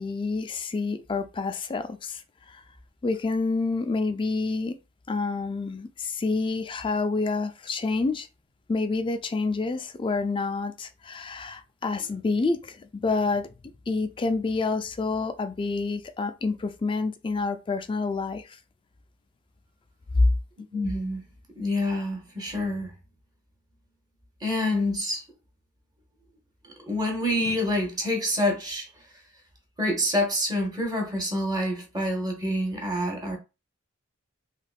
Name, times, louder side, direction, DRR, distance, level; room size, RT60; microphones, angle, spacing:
voice 1, 0.0-2.2 2.5-2.6 3.0-4.8 5.1-8.3 8.7-13.5 13.9-18.5 20.1-20.3, left 3 dB, 25° left, 0.3 m, -28 dB
voice 2, 20.7-21.2 21.5-22.9 24.4-25.2 26.6-29.1 29.8-33.4, left 1 dB, 20° right, 0.9 m, -27 dB
3.4 x 2.9 x 2.3 m
head